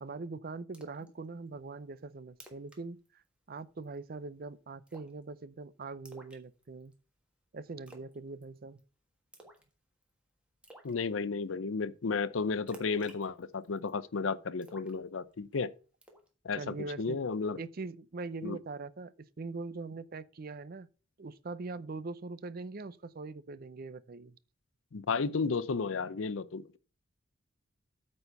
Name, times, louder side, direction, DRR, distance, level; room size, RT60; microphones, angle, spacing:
voice 1, 0.0-3.2 3.5-6.9 7.5-8.8 16.6-17.2 17.6-20.9 21.2-24.4, right 3 dB, 45° right, 0.5 m, -42 dB
Splash splatter, 0.7-1.1 1.5-1.6 2.0-2.1 2.3-2.8 3.1-3.3 3.6-4.0 4.9-5.2 6.1-6.9 7.9-8.2 8.4-8.8 9.3-9.7 10.0-10.1 10.6-10.9 12.7-13.9 14.6-15.5 16.0-16.3, right 1 dB, 5° right, 1.5 m, -54 dB
voice 2, 10.8-15.7 16.4-17.6 18.4-18.6 24.9-26.8, left 4 dB, 75° left, 0.6 m, -33 dB
8.8 x 4.3 x 6.6 m
head